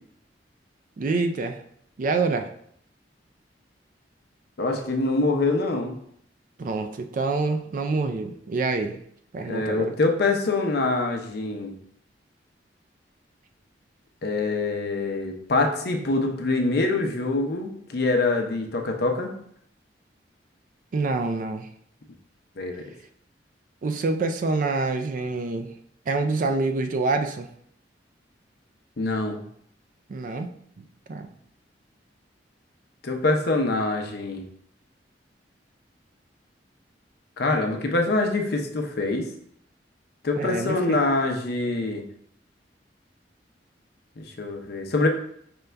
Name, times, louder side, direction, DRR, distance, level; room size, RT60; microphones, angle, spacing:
voice 1, 1.0-1.6 2.0-2.5 6.6-9.0 9.3-10.0 20.9-21.7 23.8-25.7 26.1-27.5 30.1-30.5 30.8-31.3 40.4-41.0, right 3 dB, 45° right, 7 dB, 0.3 m, -26 dB
voice 2, 4.6-6.0 9.4-11.8 14.2-19.3 22.6-22.8 29.0-29.4 33.0-34.4 37.4-39.3 40.2-42.0 44.2-45.1, left 2 dB, 60° left, 3 dB, 0.6 m, -25 dB
5.2 x 2.2 x 3.3 m, 0.68 s
head